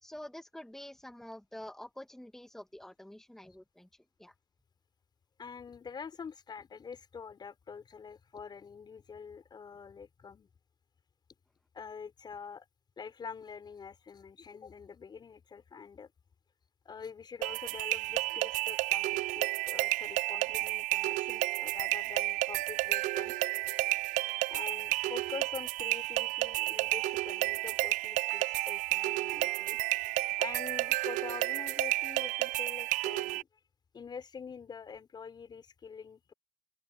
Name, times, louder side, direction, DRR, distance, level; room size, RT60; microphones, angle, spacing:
voice 1, 0.0-3.9 4.2-4.3, left 1 dB, 5° left, 2.2 m, -47 dB
voice 2, 5.4-10.5 11.7-12.7 13.0-16.1 16.9-23.4 24.5-29.8 30.4-33.5 33.9-36.3, left 6 dB, 30° left, 7.0 m, -45 dB
sound 1, 17.4-33.4, right 18 dB, 65° right, 0.7 m, -31 dB
sound 2, 23.6-31.8, right 29 dB, 85° right, 6.5 m, -57 dB
open air
supercardioid pair, 105°, 14 cm